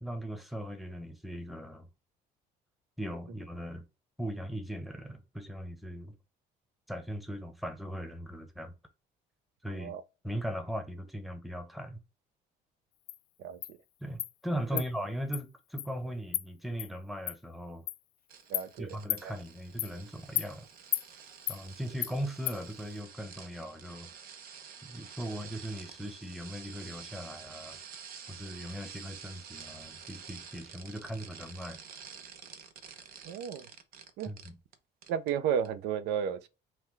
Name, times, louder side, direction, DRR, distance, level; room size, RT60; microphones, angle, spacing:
voice 1, 0.0-1.9 3.0-3.9 4.2-6.1 6.9-8.7 9.6-10.0 10.2-12.0 14.0-17.8 18.8-20.7 21.5-24.1 24.8-27.8 28.3-31.8 34.3-34.6, equal, ahead, 0.8 m, -39 dB
Insect, 13.1-13.2 13.6-13.7 14.2-14.3 14.8-14.9 15.3-15.4 15.8-15.9 16.3-16.4 16.8-16.9 17.3-17.4 17.9-18.0 18.5-18.7 19.1-19.2 19.8-19.9 20.4-20.5 20.9-21.1 21.5-21.6 22.0-22.1 22.5-22.6, left 15 dB, 85° left, 0.4 m, -32 dB
voice 2, 13.4-13.8 14.7-14.8 18.5-19.0 19.2-19.3 33.2-33.7 34.2-34.3 35.1-36.5, right 8 dB, 90° right, 0.5 m, -33 dB
sound 1, 18.3-34.7 35.0-35.3 35.6-35.7, right 7 dB, 60° right, 0.7 m, -49 dB
5.6 x 2.2 x 3.1 m
cardioid pair, 110°, 17 cm